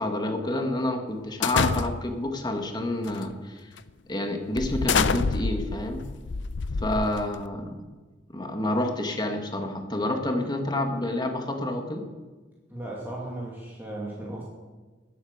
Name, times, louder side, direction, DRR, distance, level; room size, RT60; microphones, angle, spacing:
voice 1, 0.0-3.7 4.1-6.0 6.8-7.8 8.3-12.0, left 1 dB, 25° left, 4 dB, 1.7 m, -28 dB
sound 1, 1.4-2.2 3.0-3.3 3.8-3.9 4.6-7.5, left 5 dB, 75° left, 0.6 m, -27 dB
voice 2, 12.7-14.4, right 1 dB, 10° right, -5 dB, 2.5 m, -36 dB
18.5 x 8.4 x 7.2 m, 1.3 s
head